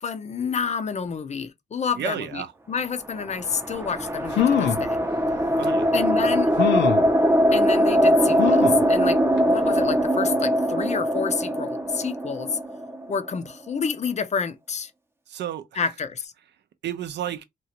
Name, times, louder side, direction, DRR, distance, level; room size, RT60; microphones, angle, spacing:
voice 1, 0.0-2.4 2.7-5.0 5.9-6.5 7.5-12.6 13.1-14.9 15.8-16.3, left 6 dB, 40° left, 0.5 m, -29 dB
voice 2, 2.0-2.5 5.6-5.9 15.3-15.8 16.8-17.4, right 10 dB, 75° right, 0.5 m, -32 dB
sound 1, 3.1-13.5, equal, 15° right, 0.5 m, -22 dB
sound 2, 3.9-4.0 4.3-4.9 5.6-5.7 6.6-7.1 8.4-8.9 9.4-9.5 9.8-9.9, left 8 dB, 85° left, 0.5 m, -23 dB
2.9 x 2.4 x 2.8 m
cardioid pair, 85°, 18 cm